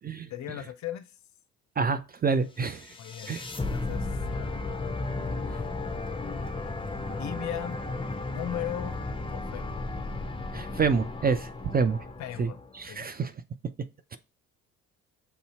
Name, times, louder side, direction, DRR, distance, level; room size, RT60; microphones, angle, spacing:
voice 1, 0.3-1.2 3.0-3.4 3.7-4.1 4.4-4.5 5.2-5.7 7.2-7.8 8.3-9.0 9.3-9.8 12.2-12.6 12.9-13.1, left 11 dB, 50° left, 0.6 m, -37 dB
voice 2, 1.8-2.9 3.3-3.4 5.5-5.6 10.5-12.0 12.4-13.3, right 5 dB, 25° right, 0.4 m, -28 dB
sound 1, 2.6-12.8, left 3 dB, 15° left, 0.8 m, -34 dB
6.7 x 2.7 x 2.8 m
hypercardioid pair, 50°, 38 cm